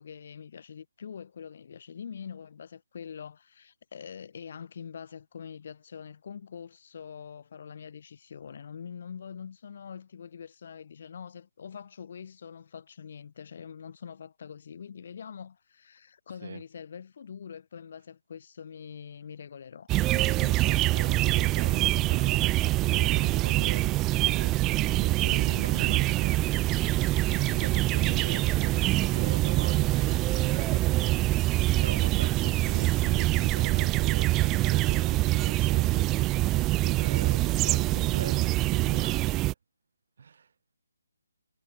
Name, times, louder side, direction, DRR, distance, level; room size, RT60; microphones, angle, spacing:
voice 1, 0.0-19.9, left 7 dB, 45° left, 3.5 m, -44 dB
sound 1, 19.9-39.5, right 18 dB, 15° right, 0.4 m, -25 dB
voice 2, 20.1-23.9 24.2-31.2 31.8-36.4 36.8-39.2 40.2-40.5, right 6 dB, 50° right, 2.7 m, -41 dB
figure-of-eight pair, 150°, 0 cm